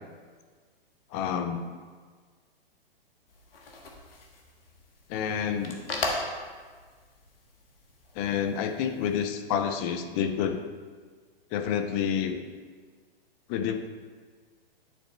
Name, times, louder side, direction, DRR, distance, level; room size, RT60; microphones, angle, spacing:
voice 1, 1.1-1.6 5.1-5.8 8.1-10.6 11.5-12.4 13.5-13.9, left 8 dB, 25° left, 8 dB, 0.4 m, -29 dB
sound 1, 3.3-9.3, left 2 dB, 75° left, 1.2 m, -39 dB
9.7 x 4.1 x 3.3 m, 1.5 s
hypercardioid pair, 125°, 29 cm